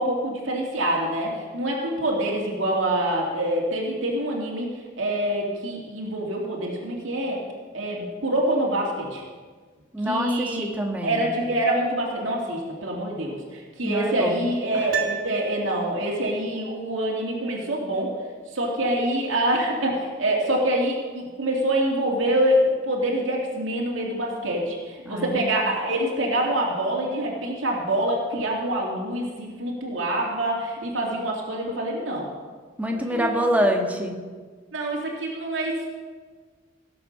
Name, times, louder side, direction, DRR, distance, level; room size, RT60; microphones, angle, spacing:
voice 1, 0.0-4.7 5.0-7.4 7.7-9.2 10.0-10.6 11.0-18.1 18.5-32.3 32.9-33.4 34.7-35.9, right 1 dB, 75° right, -2 dB, 2.8 m, -25 dB
voice 2, 9.9-11.3 13.8-14.4 14.7-14.9 25.1-25.5 32.8-34.1, equal, 10° right, 2 dB, 1.5 m, -26 dB
Piano, 14.9-16.2 16.4-16.5, right 8 dB, 50° right, 1.4 m, -32 dB
17.0 x 7.7 x 6.7 m, 1.5 s
head